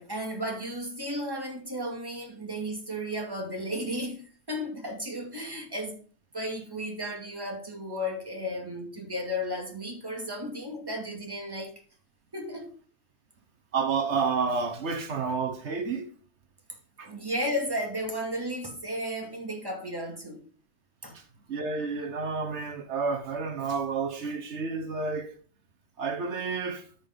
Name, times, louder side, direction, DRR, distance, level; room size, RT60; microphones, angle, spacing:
voice 1, 0.0-6.0 6.3-11.7 12.3-12.7 17.0-20.4 21.0-21.2, equal, 20° right, 2.5 m, -34 dB
voice 2, 13.7-16.1 17.0-17.1 21.1-21.2 21.5-25.3 26.0-26.8, right 5 dB, 85° right, 1.4 m, -30 dB
13.5 x 5.3 x 3.8 m
omnidirectional pair, 1.1 m